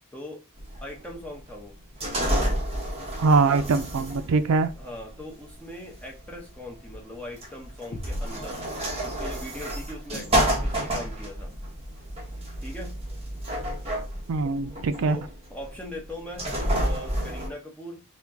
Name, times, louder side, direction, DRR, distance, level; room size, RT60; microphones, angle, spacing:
voice 1, 0.1-0.4 0.8-1.8 4.8-8.6 9.0-11.5 12.6-13.0 15.0-18.0, left 1 dB, 5° left, 0.8 m, -40 dB
sound 1, 0.6-17.5, right 1 dB, 25° right, 1.0 m, -30 dB
voice 2, 3.2-4.7 14.3-15.2, right 4 dB, 65° right, 0.4 m, -22 dB
sound 2, 7.9-9.6, equal, 45° left, 0.7 m, -37 dB
4.2 x 2.2 x 3.5 m
head